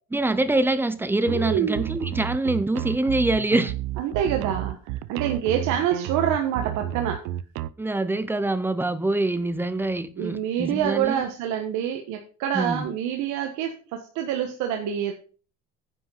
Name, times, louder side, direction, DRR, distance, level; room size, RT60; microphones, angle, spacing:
voice 1, 0.1-3.7 7.8-11.3 12.5-12.9, right 2 dB, 5° right, 0.6 m, -25 dB
sound 1, 1.2-7.7, right 13 dB, 85° right, 0.7 m, -31 dB
voice 2, 1.3-1.8 4.0-4.8 5.1-7.2 10.2-15.1, right 9 dB, 70° right, 1.4 m, -26 dB
10.0 x 5.8 x 5.6 m
cardioid pair, 160°, 30 cm